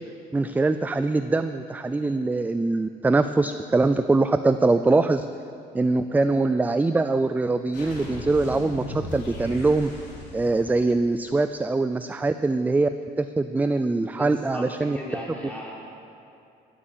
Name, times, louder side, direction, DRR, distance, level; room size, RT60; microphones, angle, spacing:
voice 1, 0.3-5.3 5.7-9.9 10.3-12.9 13.2-15.0, right 3 dB, 10° right, 10 dB, 0.3 m, -23 dB
sound 1, 7.7-11.4, left 1 dB, 75° left, 3.6 m, -38 dB
voice 2, 14.1-14.6 14.9-15.7, left 1 dB, 10° left, -5 dB, 3.8 m, -36 dB
15.0 x 8.6 x 7.4 m, 2.7 s
cardioid pair, 110°, 17 cm